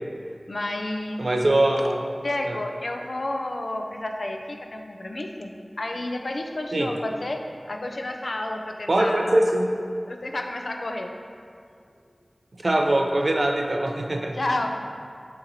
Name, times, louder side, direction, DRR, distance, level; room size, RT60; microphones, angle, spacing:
voice 1, 0.5-1.2 2.2-5.5 5.8-7.4 7.7-9.5 10.1-11.1 14.3-14.8, left 1 dB, 70° left, 3 dB, 0.3 m, -30 dB
voice 2, 1.2-2.0 2.5-2.6 6.7-6.9 8.9-9.7 12.6-14.4, right 1 dB, 65° right, 2 dB, 0.4 m, -22 dB
6.4 x 2.9 x 2.7 m, 2.3 s
wide cardioid pair, 50°, 0 cm